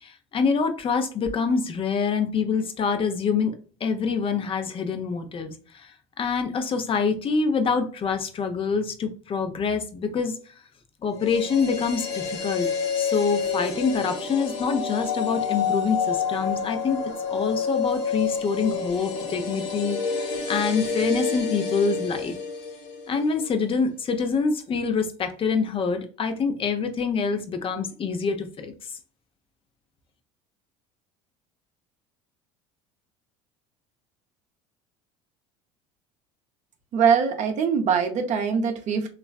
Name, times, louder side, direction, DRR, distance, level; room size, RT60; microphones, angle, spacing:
voice 1, 0.0-3.5 3.8-5.9 6.2-10.4 11.0-12.7 13.0-17.0 17.3-20.0 20.5-22.3 23.1-28.7, left 5 dB, 35° left, 7 dB, 0.6 m, -26 dB
sound 1, 11.1-23.3 23.5-23.6, left 5 dB, 65° left, 1.0 m, -28 dB
voice 2, 36.9-39.1, right 6 dB, 50° right, 5 dB, 0.6 m, -22 dB
3.1 x 2.5 x 2.2 m, 0.40 s
hypercardioid pair, 80°, 16 cm